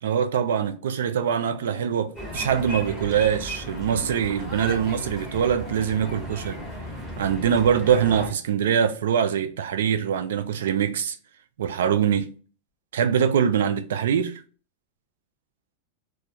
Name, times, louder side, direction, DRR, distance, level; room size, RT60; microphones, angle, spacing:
voice 1, 0.0-6.6 7.2-11.2 11.6-12.3 12.9-14.4, right 8 dB, 85° right, 0.4 m, -23 dB
sound 1, 2.2-8.3, equal, 5° right, 1.1 m, -35 dB
2.3 x 2.2 x 2.8 m
supercardioid pair, 125°, 0 cm